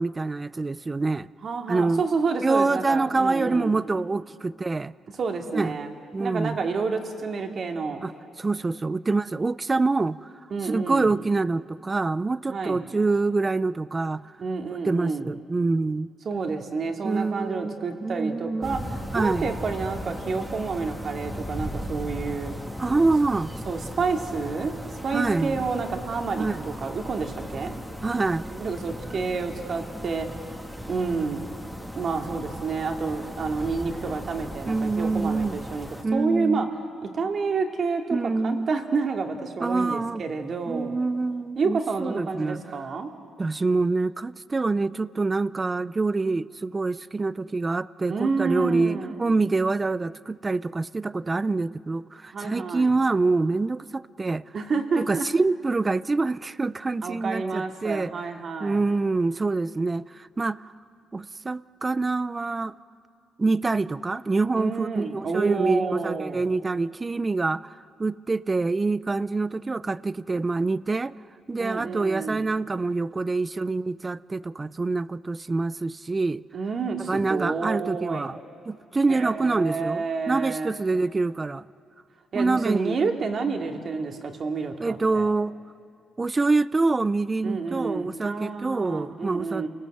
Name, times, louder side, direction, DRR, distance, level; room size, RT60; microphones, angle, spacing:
voice 1, 0.0-1.3 1.7-2.0 2.4-4.9 5.5-5.8 6.1-6.6 8.0-8.1 8.4-10.3 10.6-14.3 14.9-16.1 17.0-18.7 19.1-19.5 22.8-23.5 25.1-25.6 26.4-26.7 28.0-28.5 34.7-35.6 36.0-36.7 38.1-38.7 39.6-40.2 40.7-42.6 43.4-54.4 55.0-58.1 58.6-60.6 61.1-62.7 63.4-71.2 71.5-76.4 77.1-78.4 78.7-81.7 82.3-83.0 84.8-85.5 86.2-89.7, right 3 dB, 25° right, 18 dB, 0.5 m, -26 dB
voice 2, 1.4-3.8 5.2-5.9 6.2-8.0 10.5-11.2 12.5-12.8 14.4-15.3 16.2-22.5 23.6-27.8 28.5-30.3 30.9-31.5 32.0-36.7 37.1-38.2 38.4-41.0 41.6-43.1 48.1-49.3 52.3-52.9 54.5-55.3 57.0-58.8 64.6-66.4 71.6-72.5 76.5-78.3 79.1-80.7 82.3-85.3 87.4-89.7, right 4 dB, 50° right, 3 dB, 2.4 m, -29 dB
sound 1, 18.6-36.0, equal, ahead, 2.0 m, -37 dB
28.5 x 19.0 x 7.9 m, 2.5 s
cardioid pair, 90°, 0 cm